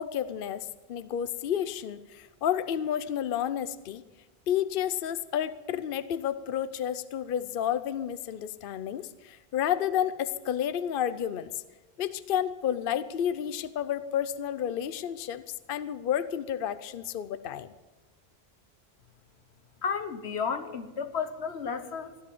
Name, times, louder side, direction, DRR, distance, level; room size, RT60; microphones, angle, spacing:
voice 1, 0.0-4.0 4.5-11.6 12.0-17.7, left 10 dB, 60° left, 14 dB, 0.8 m, -31 dB
voice 2, 19.8-22.2, left 6 dB, 90° left, 9 dB, 1.4 m, -32 dB
16.0 x 11.0 x 7.8 m, 1.2 s
omnidirectional pair, 1.1 m